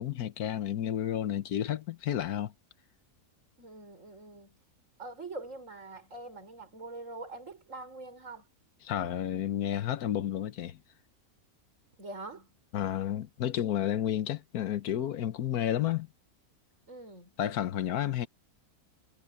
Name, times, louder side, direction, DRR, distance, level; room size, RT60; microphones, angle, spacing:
voice 1, 0.0-2.5 8.8-10.8 12.7-16.1 17.4-18.3, left 11 dB, 90° left, 1.4 m, -31 dB
voice 2, 3.6-4.6 5.0-8.4 12.0-12.5 16.9-17.4, right 2 dB, 55° right, 5.7 m, -44 dB
omnidirectional pair, 1.6 m